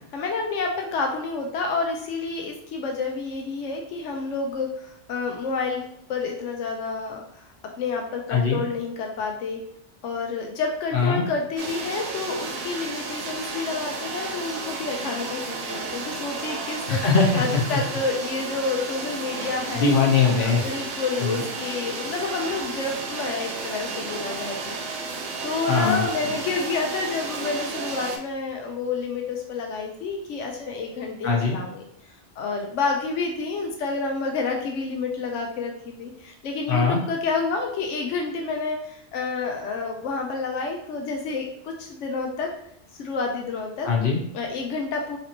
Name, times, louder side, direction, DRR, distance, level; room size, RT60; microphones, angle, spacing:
voice 1, 0.1-7.4 7.8-9.6 10.0-17.0 17.3-19.9 20.4-24.8 25.4-31.8 32.4-42.5 43.0-43.9 44.3-45.2, left 4 dB, 90° left, 1 dB, 0.9 m, -29 dB
voice 2, 8.3-8.6 10.9-11.2 16.9-17.8 19.7-20.6 21.2-21.4 25.7-26.0 31.2-31.6 36.7-37.0 43.8-44.2, left 5 dB, 50° left, -2 dB, 1.1 m, -21 dB
sound 1, 11.6-28.2, right 4 dB, 75° right, 0.9 m, -33 dB
4.2 x 2.9 x 2.7 m, 0.74 s
omnidirectional pair, 1.2 m